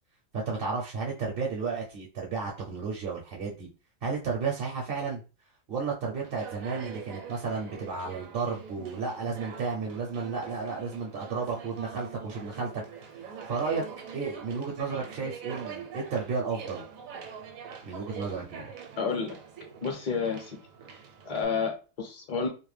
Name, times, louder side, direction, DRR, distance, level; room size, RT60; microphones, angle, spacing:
voice 1, 0.3-3.7 4.0-5.2 5.7-12.7 13.0-13.8 14.1-16.8 17.8-18.7, right 4 dB, 55° right, -1 dB, 0.7 m, -33 dB
Conversation, 6.2-21.4, right 7 dB, 75° right, 1.0 m, -44 dB
voice 2, 19.0-19.4 19.8-20.6 21.2-22.5, left 5 dB, 40° left, 2 dB, 0.6 m, -30 dB
2.5 x 2.1 x 3.2 m, 0.33 s
omnidirectional pair, 1.5 m